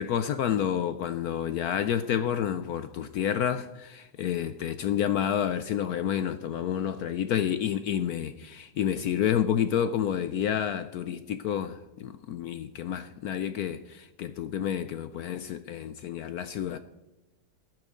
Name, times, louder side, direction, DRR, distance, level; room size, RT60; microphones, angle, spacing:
voice 1, 0.0-16.8, left 9 dB, 75° left, 0.9 m, -29 dB
14.5 x 12.0 x 3.8 m
omnidirectional pair, 2.1 m